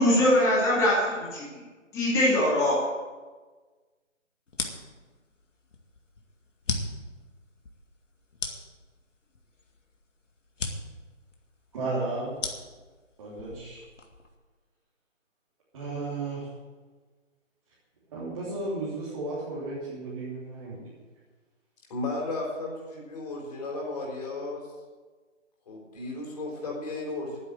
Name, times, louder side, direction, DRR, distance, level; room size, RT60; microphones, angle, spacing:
voice 1, 0.0-1.4 1.9-2.9, left 1 dB, 10° left, -6 dB, 2.6 m, -22 dB
sound 1, 4.5-14.4, left 3 dB, 75° left, 2.2 m, -38 dB
voice 2, 11.7-12.3 13.2-13.8 15.7-16.5 18.1-20.9, right 2 dB, 30° right, -9 dB, 3.4 m, -34 dB
voice 3, 21.9-24.6 25.7-27.4, left 2 dB, 30° left, -1 dB, 4.0 m, -34 dB
11.5 x 9.8 x 7.8 m, 1.3 s
figure-of-eight pair, 160°, 38 cm